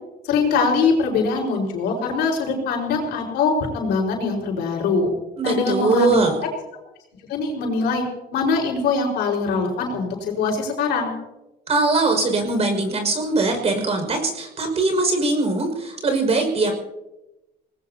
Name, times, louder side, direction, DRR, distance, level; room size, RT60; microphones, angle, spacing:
voice 1, 0.3-5.1 5.4-6.2 7.3-8.0 8.3-11.1, left 4 dB, 80° left, 0 dB, 4.9 m, -22 dB
voice 2, 5.4-6.4 11.7-16.7, right 3 dB, 40° right, 4 dB, 5.8 m, -21 dB
25.0 x 19.5 x 2.9 m, 0.99 s
cardioid pair, 110°, 17 cm